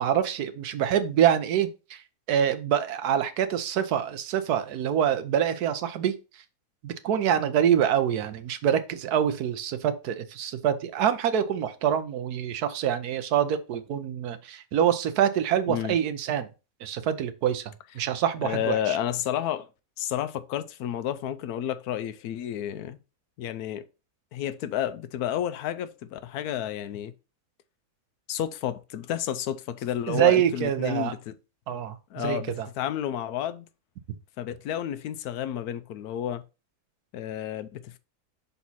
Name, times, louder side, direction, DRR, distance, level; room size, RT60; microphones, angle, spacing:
voice 1, 0.0-2.0 2.3-6.1 6.8-16.5 16.8-19.0 30.1-31.1 31.7-32.7, right 9 dB, 80° right, 1.3 m, -25 dB
voice 2, 18.4-19.7 20.0-23.0 23.4-23.8 24.3-27.1 28.3-31.3 32.1-33.7 34.4-36.4 37.1-38.0, left 11 dB, 80° left, 1.1 m, -31 dB
5.9 x 4.2 x 4.1 m
omnidirectional pair, 1.6 m